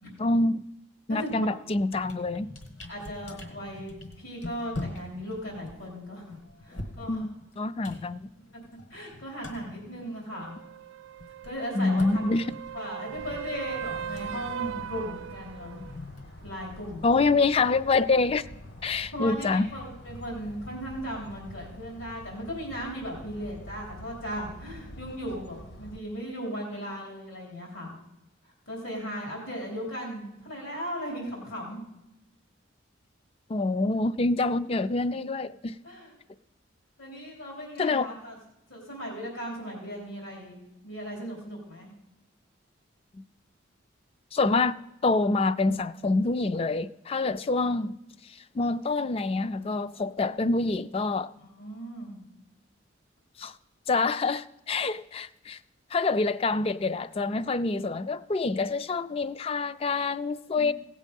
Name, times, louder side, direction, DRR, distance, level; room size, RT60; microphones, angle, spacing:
voice 1, 0.2-0.6 1.1-2.5 7.0-8.3 11.7-12.5 17.0-18.5 18.8-19.7 33.5-35.8 37.8-38.1 44.3-44.8 45.0-48.0 48.5-51.3 53.4-53.5 53.9-55.6 55.9-60.7, left 3 dB, 30° left, 0.3 m, -26 dB
voice 2, 1.1-1.5 2.9-7.3 8.9-10.5 11.4-12.2 12.7-15.8 16.4-17.3 19.1-27.9 28.4-31.8 35.8-36.1 37.0-38.4 38.7-41.9 51.4-52.2, equal, 85° left, 3.5 m, -37 dB
sound 1, 1.3-1.5 1.8-10.7 10.9-16.9, left 2 dB, 70° left, 1.5 m, -44 dB
sound 2, 10.3-16.0 20.1-20.2, right 9 dB, 80° right, 0.4 m, -39 dB
sound 3, 13.1-26.0, left 1 dB, 55° left, 0.9 m, -46 dB
16.5 x 7.4 x 5.3 m
head